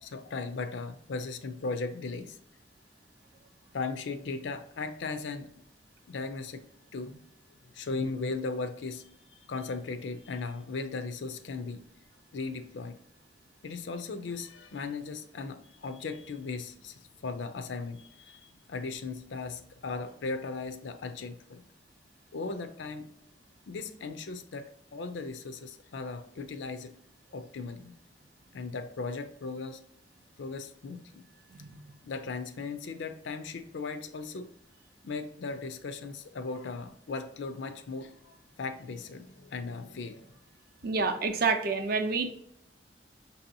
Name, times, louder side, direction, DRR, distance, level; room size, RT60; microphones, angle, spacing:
voice 1, 0.0-2.4 3.7-5.6 6.1-6.7 6.9-7.2 7.7-9.0 9.5-11.8 12.3-13.0 13.6-21.6 22.3-23.1 23.7-24.7 24.9-26.9 27.3-27.9 28.5-29.8 30.4-31.2 32.0-34.5 35.0-40.4, left 4 dB, 75° left, 9 dB, 0.5 m, -37 dB
voice 2, 40.8-42.3, right 4 dB, 50° right, 6 dB, 0.5 m, -28 dB
5.8 x 2.8 x 2.7 m, 0.71 s
head